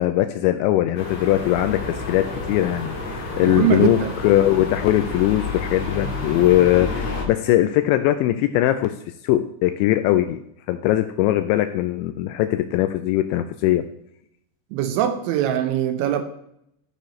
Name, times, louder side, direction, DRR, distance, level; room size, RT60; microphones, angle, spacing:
voice 1, 0.0-8.9 9.2-10.4 10.7-13.8, left 14 dB, 85° left, 8 dB, 2.6 m, -20 dB
sound 1, 0.9-7.2, left 3 dB, 40° left, 2.7 m, -30 dB
voice 2, 3.4-4.1 14.7-16.2, right 11 dB, 80° right, 8 dB, 3.1 m, -22 dB
14.0 x 6.6 x 3.1 m, 0.75 s
omnidirectional pair, 5.6 m